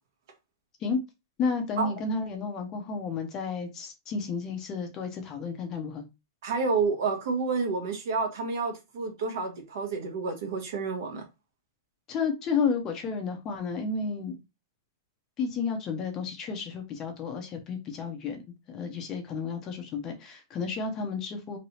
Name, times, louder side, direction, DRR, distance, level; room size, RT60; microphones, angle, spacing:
voice 1, 1.4-6.1 12.1-14.4 15.4-18.4 18.7-21.6, left 5 dB, 20° left, 0.6 m, -32 dB
voice 2, 6.4-11.2, right 4 dB, 55° right, 1.0 m, -29 dB
3.1 x 2.9 x 2.8 m
supercardioid pair, 170°, 2 cm